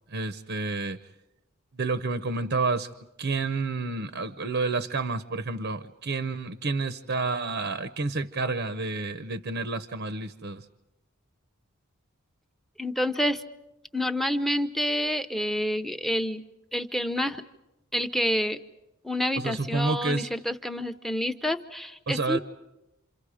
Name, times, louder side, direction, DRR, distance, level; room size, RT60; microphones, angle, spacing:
voice 1, 0.1-1.0 1.7-2.9 3.2-10.7 19.4-20.3 22.1-22.4, right 3 dB, 55° right, 11 dB, 0.7 m, -29 dB
voice 2, 12.8-13.4 13.9-16.4 16.7-17.4 17.9-18.6 19.0-22.4, equal, ahead, 10 dB, 0.7 m, -28 dB
28.0 x 27.5 x 5.0 m, 0.93 s
head